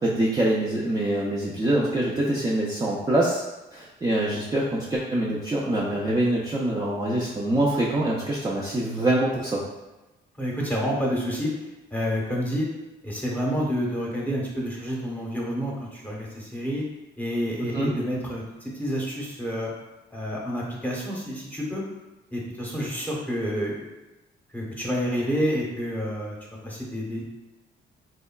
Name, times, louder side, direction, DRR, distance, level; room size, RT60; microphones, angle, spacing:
voice 1, 0.0-3.4 3.7-9.6 17.7-17.9, right 1 dB, 20° right, -5 dB, 0.4 m, -24 dB
voice 2, 10.4-11.5 11.9-12.7 13.0-16.8 17.2-19.7 20.1-21.8 22.3-23.9 24.5-26.4 26.6-27.2, equal, 10° left, -4 dB, 0.8 m, -29 dB
3.4 x 2.2 x 2.2 m, 1.1 s
cardioid pair, 90°, 20 cm